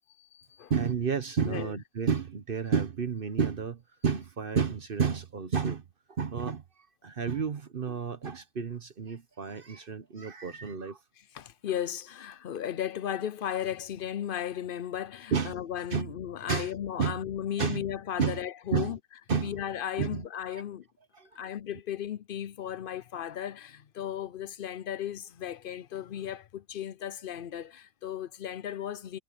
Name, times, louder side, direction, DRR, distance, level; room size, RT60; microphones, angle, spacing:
voice 1, 0.2-0.7 1.4-1.8 11.2-19.0 19.4-20.9 21.4-29.2, left 10 dB, 55° left, 0.7 m, -35 dB
voice 2, 0.7-5.8 6.2-6.6 7.0-11.0 15.3-15.6 15.9-16.1 16.5-16.7 17.0-17.2 17.6-17.8 18.2-18.4 18.7-18.9 19.3-19.5 20.0-20.2 20.5-20.6 21.2-21.4, right 6 dB, 50° right, 1.1 m, -30 dB
omnidirectional pair, 1.3 m